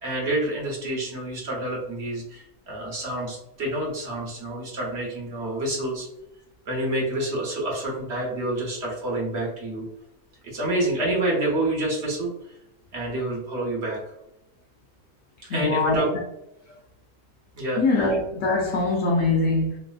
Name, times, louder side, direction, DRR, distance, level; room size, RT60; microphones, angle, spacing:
voice 1, 0.0-6.1 6.7-9.9 10.4-12.3 12.9-14.0 15.4-16.1 17.6-18.1, right 1 dB, 55° right, 1.0 m, -28 dB
voice 2, 15.5-16.0 17.8-19.8, left 3 dB, 65° left, 0.9 m, -23 dB
3.2 x 2.4 x 2.3 m
omnidirectional pair, 1.6 m